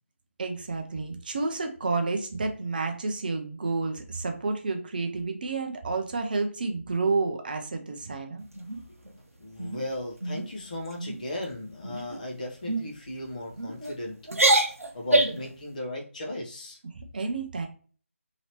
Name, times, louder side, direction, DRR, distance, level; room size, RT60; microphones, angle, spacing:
voice 1, 0.4-8.4 16.9-17.7, right 3 dB, 40° right, 4 dB, 0.5 m, -30 dB
sound 1, 8.5-9.1 9.6-9.8 10.2-10.5 10.8-11.2 11.8-12.2 12.7-12.8 13.6-13.9 14.3-15.5, right 2 dB, 85° right, 0.7 m, -25 dB
voice 2, 9.4-14.2 14.9-16.8, left 1 dB, 35° left, -1 dB, 0.9 m, -36 dB
2.9 x 2.8 x 2.9 m, 0.41 s
figure-of-eight pair, 155°, 8 cm